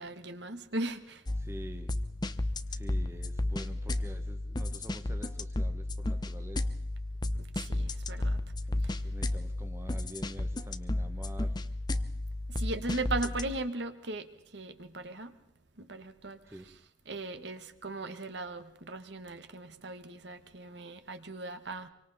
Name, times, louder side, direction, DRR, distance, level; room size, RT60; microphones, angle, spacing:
voice 1, 0.0-1.2 7.4-8.4 8.8-8.9 12.5-14.3 14.5-15.3 15.8-16.4 16.6-16.8 17.0-21.9, right 2 dB, 65° right, 1.5 m, -38 dB
sound 1, 1.3-13.5, left 1 dB, 20° left, 0.7 m, -33 dB
voice 2, 1.4-2.0 2.7-6.7 8.6-11.5 13.2-13.3 16.5-16.7, equal, 15° right, 1.2 m, -47 dB
26.0 x 24.5 x 4.2 m
head